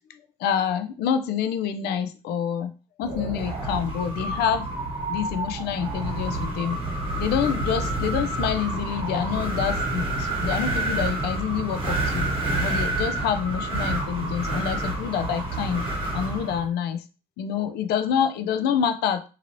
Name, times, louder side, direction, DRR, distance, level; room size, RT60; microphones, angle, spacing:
voice 1, 0.4-2.7 3.0-4.7 5.1-6.8 7.2-15.8 16.1-17.0 17.4-19.3, left 8 dB, 75° left, 10 dB, 0.5 m, -27 dB
Wind, 3.0-16.7, right 2 dB, 30° right, 1.3 m, -28 dB
3.0 x 2.8 x 2.5 m, 0.33 s
cardioid pair, 110°, 17 cm